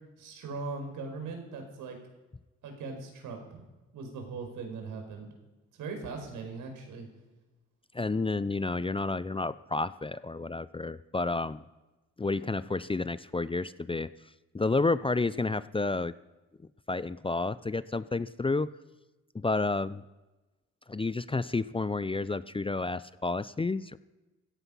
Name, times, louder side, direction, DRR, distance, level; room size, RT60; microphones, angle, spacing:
voice 1, 0.2-2.0 2.6-3.6 3.9-5.3 5.8-7.1, right 4 dB, 70° right, 4 dB, 5.2 m, -39 dB
voice 2, 7.9-11.6 12.2-14.1 14.5-16.1 16.9-18.7 19.3-20.0 20.9-24.0, left 3 dB, 15° left, 16 dB, 0.7 m, -30 dB
16.5 x 15.0 x 5.7 m, 1.1 s
hypercardioid pair, 55°, 32 cm